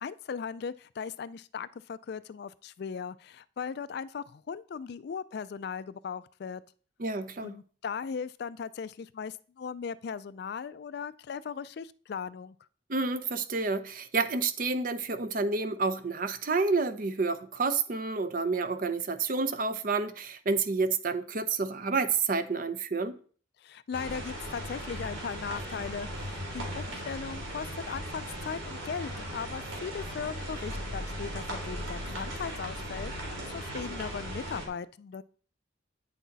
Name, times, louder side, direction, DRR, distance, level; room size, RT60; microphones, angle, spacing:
voice 1, 0.0-6.6 7.4-12.6 23.6-35.2, left 6 dB, 55° left, 0.3 m, -38 dB
voice 2, 7.0-7.5 12.9-23.2, right 4 dB, 45° right, 0.6 m, -29 dB
sound 1, 23.9-34.7, equal, 80° right, 3.1 m, -38 dB
9.3 x 6.1 x 4.0 m
head